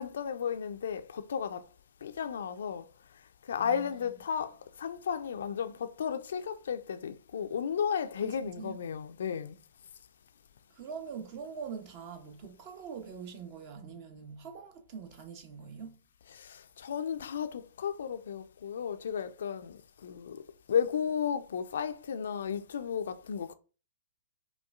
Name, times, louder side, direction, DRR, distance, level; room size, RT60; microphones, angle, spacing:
voice 1, 0.0-1.7 2.0-2.9 3.4-9.6 16.3-20.4 20.7-23.5, left 7 dB, 65° left, 0.3 m, -34 dB
voice 2, 3.6-4.2 4.4-4.6 8.2-8.8 10.8-15.9, right 6 dB, 40° right, 0.8 m, -44 dB
5.2 x 2.3 x 2.4 m
figure-of-eight pair, 115°, 0 cm